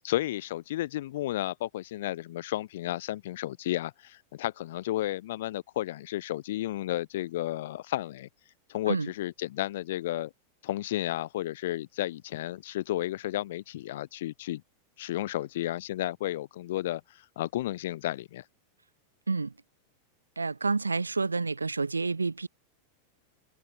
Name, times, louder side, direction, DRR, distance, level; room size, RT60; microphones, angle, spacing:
voice 1, 0.0-8.3 8.7-10.3 10.6-14.6 15.0-18.4, left 14 dB, 55° left, 0.7 m, -32 dB
voice 2, 20.4-22.5, right 4 dB, 80° right, 0.9 m, -29 dB
figure-of-eight pair, 90°, 0 cm